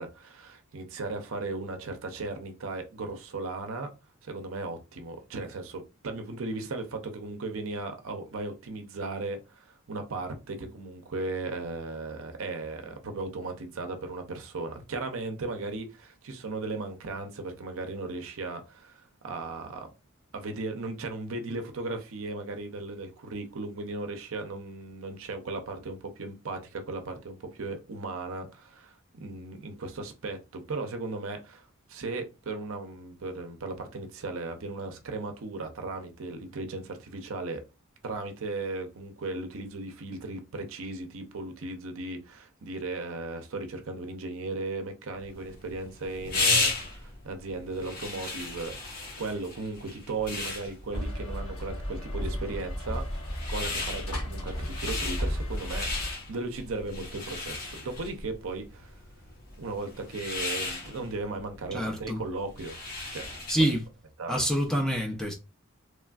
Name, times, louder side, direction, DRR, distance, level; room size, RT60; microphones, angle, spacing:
voice 1, 0.0-3.9 4.2-19.9 20.3-37.6 38.0-48.7 49.2-53.0 53.5-55.9 56.3-59.0 59.6-62.8 63.1-63.4 64.2-64.4, right 3 dB, 65° right, 0.6 m, -36 dB
sound 1, 45.3-63.8, left 3 dB, 40° left, 0.9 m, -35 dB
sound 2, 50.9-56.1, equal, 70° left, 0.9 m, -33 dB
voice 2, 61.7-62.2 63.5-63.8 64.3-65.3, equal, 5° left, 0.5 m, -26 dB
3.2 x 2.4 x 2.3 m
head